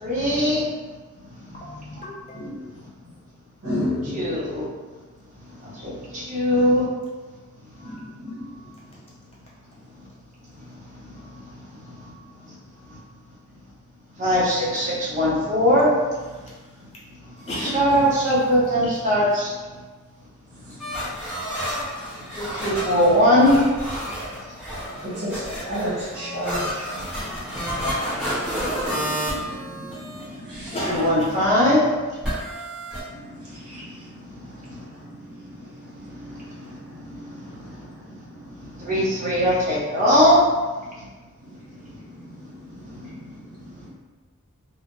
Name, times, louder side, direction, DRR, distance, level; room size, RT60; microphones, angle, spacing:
voice 1, 0.0-0.7 4.1-4.6 5.8-6.8 14.2-15.9 17.7-19.5 22.4-23.6 30.9-31.8 38.8-40.4, equal, 35° right, -8 dB, 0.7 m, -19 dB
voice 2, 1.5-3.0 7.8-8.0 16.3-16.8 17.4-18.2 24.5-24.6 30.2-30.4 30.7-31.4, equal, 25° left, -6 dB, 0.5 m, -35 dB
voice 3, 3.6-4.1 7.8-8.5 20.8-20.9 25.0-30.7 33.1-38.7 41.5-43.9, equal, 80° right, -8 dB, 1.2 m, -35 dB
sound 1, 20.8-30.2 30.5-31.4 32.2-33.0, equal, ahead, 1.0 m, -30 dB
2.3 x 2.0 x 2.9 m, 1.3 s
head